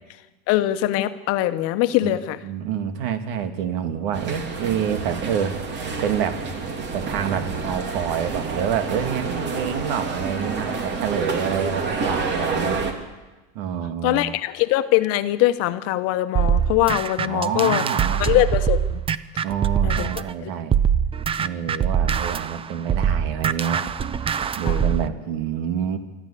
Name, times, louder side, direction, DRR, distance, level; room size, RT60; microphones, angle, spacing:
voice 1, 0.5-2.4 14.0-17.9 18.2-19.0 19.8-20.1 20.4-20.5 24.6-24.8, left 15 dB, 50° left, 11 dB, 1.2 m, -22 dB
voice 2, 2.4-5.6 6.0-6.4 6.9-12.8 13.5-14.3 17.2-18.4 19.4-20.8 21.4-23.9 24.5-26.0, right 8 dB, 65° right, 8 dB, 2.4 m, -27 dB
sound 1, 4.1-12.9, right 4 dB, 35° right, 3.2 m, -28 dB
sound 2, 16.4-20.3 20.7-25.1, right 8 dB, 20° right, 0.6 m, -23 dB
24.0 x 14.5 x 8.6 m, 1.1 s
supercardioid pair, 120°, 30 cm